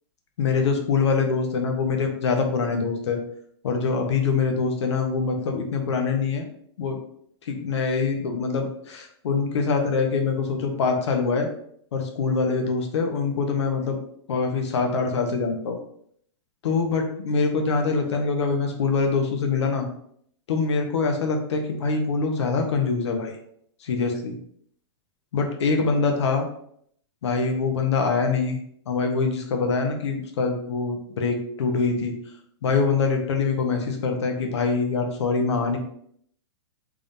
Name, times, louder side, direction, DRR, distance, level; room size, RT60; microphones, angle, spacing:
voice 1, 0.4-3.2 3.6-6.5 6.8-7.0 7.5-11.5 11.9-14.0 14.3-15.8 16.6-19.9 20.5-23.3 23.8-24.4 25.3-26.5 27.2-28.6 28.9-32.1 32.6-35.8, left 4 dB, 85° left, 4 dB, 0.9 m, -24 dB
3.5 x 2.7 x 3.6 m, 0.67 s
supercardioid pair, 155°, 14 cm